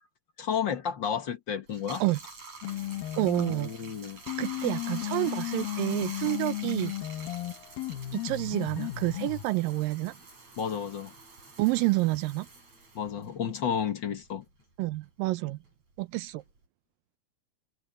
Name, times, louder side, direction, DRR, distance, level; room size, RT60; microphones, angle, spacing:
voice 1, 0.4-2.0 3.4-4.2 10.6-11.1 12.9-14.4, left 7 dB, 60° left, 1.2 m, -32 dB
Bathtub (filling or washing), 1.7-14.5 14.8-16.6, right 4 dB, 50° right, 9.3 m, -47 dB
sound 1, 2.6-3.8 4.3-9.4, left 14 dB, 80° left, 2.7 m, -35 dB
voice 2, 3.2-3.7 4.4-6.9 8.1-10.1 11.6-12.5 14.8-15.6 16.0-16.4, right 20 dB, 80° right, 2.2 m, -28 dB
omnidirectional pair, 4.2 m